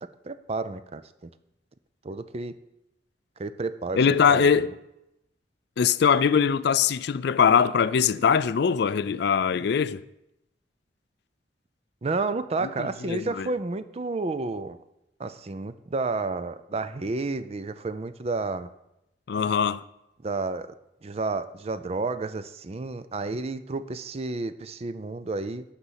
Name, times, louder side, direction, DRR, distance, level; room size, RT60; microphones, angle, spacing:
voice 1, 0.0-1.3 2.0-2.5 3.4-4.7 12.0-14.8 15.2-18.7 20.2-20.7 21.0-25.6, right 3 dB, 35° right, 0.5 m, -31 dB
voice 2, 4.0-4.7 5.8-10.0 12.8-13.5 19.3-19.8, left 6 dB, 60° left, 0.4 m, -22 dB
12.0 x 4.1 x 8.0 m
head